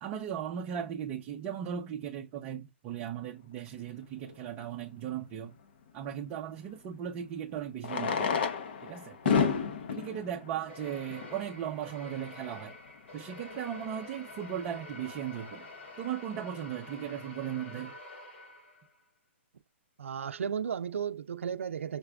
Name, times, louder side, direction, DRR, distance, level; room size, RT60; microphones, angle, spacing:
voice 1, 0.0-5.6 5.9-8.5 8.8-9.6 9.9-12.8 13.1-15.7 16.0-18.0, right 9 dB, 20° right, 0.6 m, -37 dB
Fireworks, 4.2-4.3 6.6-6.7 7.8-11.5 12.3-12.4 12.6-12.7 12.9-13.0 13.5-13.7, left 6 dB, 50° left, 0.9 m, -31 dB
sound 1, 10.7-19.0, left 2 dB, 65° left, 2.9 m, -47 dB
voice 2, 20.0-22.0, right 7 dB, 90° right, 0.5 m, -34 dB
5.8 x 2.4 x 3.4 m
hypercardioid pair, 165°, 7 cm